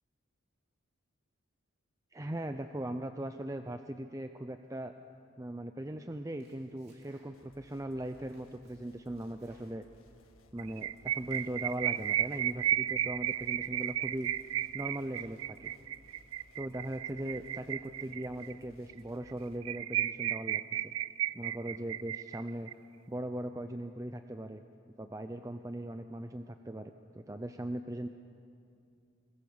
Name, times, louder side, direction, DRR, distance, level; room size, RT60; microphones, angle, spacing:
voice 1, 2.1-4.9 5.4-9.8 10.5-14.3 14.7-15.7 16.6-20.9 21.3-22.7 23.1-24.6 25.0-28.1, right 1 dB, 15° right, 8 dB, 0.5 m, -39 dB
Domestic sounds home sounds, 6.1-7.6 8.0-10.5 10.9-12.9 13.4-13.5 13.9-15.9, right 1 dB, 50° right, 4.3 m, -68 dB
sound 1, 7.3-19.6, left 1 dB, 80° left, 1.7 m, -62 dB
sound 2, 10.6-18.5 18.9-19.0 19.3-19.4 19.6-22.7, right 12 dB, 80° right, 0.4 m, -33 dB
21.5 x 21.0 x 7.2 m, 2.5 s
head